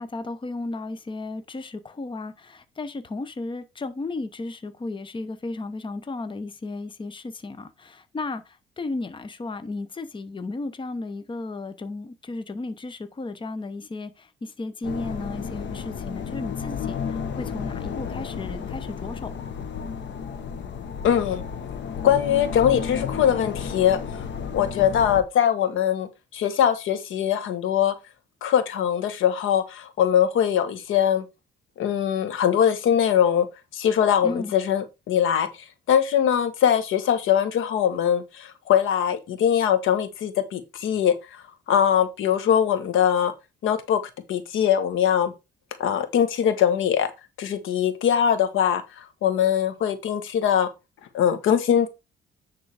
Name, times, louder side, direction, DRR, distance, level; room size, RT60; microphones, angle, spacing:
voice 1, 0.0-19.3 34.2-34.5, left 3 dB, 25° left, 0.9 m, -34 dB
sound 1, 14.8-25.2, left 6 dB, 65° left, 1.4 m, -32 dB
voice 2, 21.0-21.4 22.0-24.0 24.5-27.9 28.4-31.2 31.8-33.5 33.7-35.5 35.9-43.3 43.6-44.0 44.3-45.3 45.8-47.1 47.4-50.7 51.1-51.9, left 9 dB, 80° left, 1.5 m, -22 dB
9.8 x 3.8 x 4.9 m
cardioid pair, 90°, 20 cm